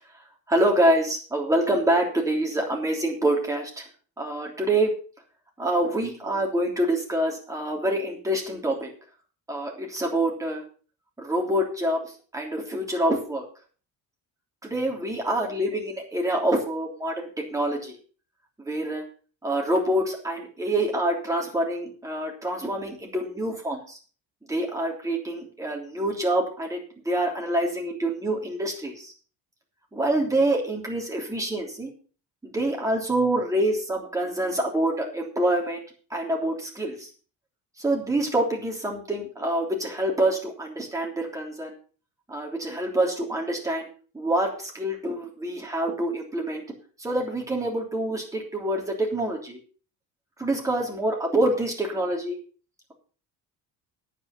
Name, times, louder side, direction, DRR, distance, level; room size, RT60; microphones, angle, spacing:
voice 1, 0.5-3.8 4.2-4.9 5.6-8.9 9.5-10.6 11.2-12.0 12.3-13.4 14.6-17.9 18.6-19.0 19.4-24.0 24.5-26.8 27.0-29.1 29.9-31.9 32.5-35.8 36.1-37.1 37.8-41.7 42.3-43.9 44.1-46.6 47.0-49.6 50.4-52.4, right 1 dB, 10° right, 0 dB, 3.2 m, -26 dB
9.7 x 9.2 x 5.9 m, 0.39 s
cardioid pair, 160°, 35 cm